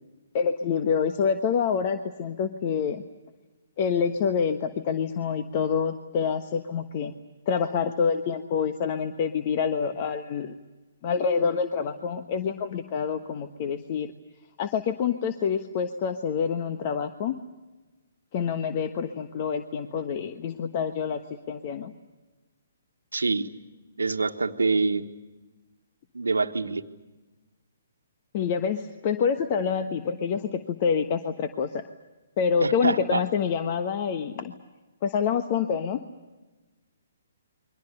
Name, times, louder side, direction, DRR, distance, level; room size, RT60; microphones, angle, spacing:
voice 1, 0.3-3.0 3.8-7.1 7.5-10.6 11.0-14.1 14.6-17.3 18.3-21.2 21.5-21.9 28.3-31.8 32.4-34.5 35.0-36.0, left 6 dB, 40° left, 8 dB, 1.2 m, -27 dB
voice 2, 23.1-23.5 24.0-25.1 26.1-26.8 32.6-33.2, right 3 dB, 80° right, 7 dB, 1.4 m, -25 dB
29.5 x 23.5 x 6.8 m, 1.2 s
figure-of-eight pair, 135°, 0 cm